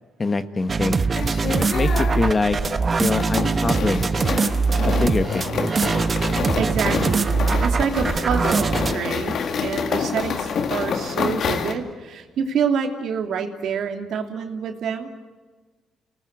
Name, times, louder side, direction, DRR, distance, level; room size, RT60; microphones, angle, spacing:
voice 1, 0.2-1.0 1.7-2.6 3.0-4.1 4.9-5.7, left 3 dB, 30° left, 10 dB, 1.5 m, -24 dB
sound 1, 0.7-8.9, right 4 dB, 35° right, 1.0 m, -22 dB
sound 2, 1.1-11.7, left 6 dB, 60° left, 2.0 m, -28 dB
voice 2, 6.6-15.1, right 6 dB, 70° right, 5 dB, 2.8 m, -27 dB
29.0 x 19.5 x 9.6 m, 1.3 s
cardioid pair, 90°, 0 cm